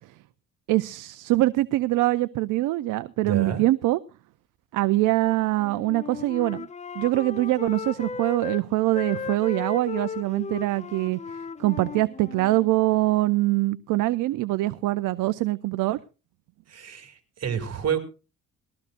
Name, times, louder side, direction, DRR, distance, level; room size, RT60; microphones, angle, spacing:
voice 1, 0.7-4.0 4.7-6.7 7.0-11.2 11.6-16.0, right 17 dB, 90° right, 14 dB, 0.5 m, -23 dB
voice 2, 3.2-3.6 16.7-18.0, right 8 dB, 55° right, 8 dB, 2.4 m, -29 dB
Wind instrument woodwind instrument, 5.5-8.6 8.9-12.7, left 5 dB, 25° left, 0.6 m, -36 dB
20.0 x 13.5 x 2.5 m, 0.32 s
cardioid pair, 90°, 30 cm